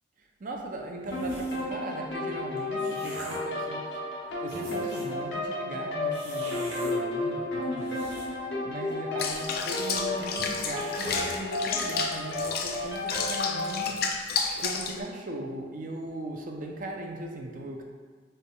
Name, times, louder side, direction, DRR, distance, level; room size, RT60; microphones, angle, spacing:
voice 1, 0.2-17.8, right 1 dB, 50° right, 1 dB, 0.5 m, -39 dB
sound 1, 1.1-13.9, left 2 dB, 75° left, 1.0 m, -32 dB
sound 2, 1.1-1.7 2.4-3.5 4.1-4.2 4.4-5.2 6.1-6.9 7.6-8.5 8.8-8.9 9.2-9.9 10.2-10.3 10.6-11.3, right 2 dB, 90° right, 1.4 m, -43 dB
Water / Bathtub (filling or washing), 9.2-15.0, left 5 dB, 55° left, 0.4 m, -31 dB
6.8 x 3.4 x 2.3 m, 1.5 s
head